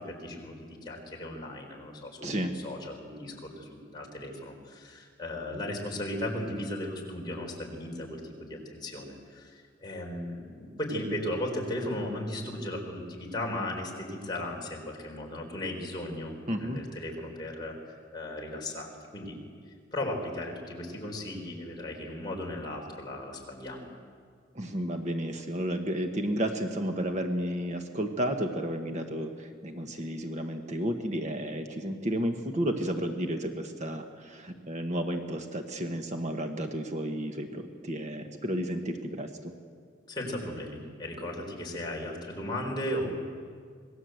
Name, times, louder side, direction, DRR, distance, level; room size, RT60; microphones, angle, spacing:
voice 1, 0.0-19.4 19.9-23.9 40.1-43.1, left 1 dB, 20° left, -1 dB, 4.3 m, -36 dB
voice 2, 16.5-16.8 24.5-39.5, equal, 35° right, 4 dB, 1.4 m, -32 dB
26.5 x 20.0 x 8.0 m, 2.1 s
head